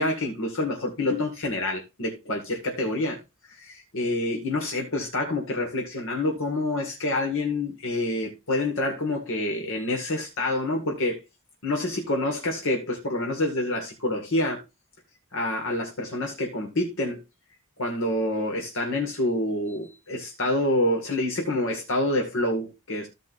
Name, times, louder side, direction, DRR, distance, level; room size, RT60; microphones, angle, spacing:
voice 1, 0.0-3.2 3.5-11.2 11.6-14.6 15.3-17.2 17.8-23.1, left 1 dB, 65° left, 2.2 m, -27 dB
15.5 x 5.3 x 2.6 m
head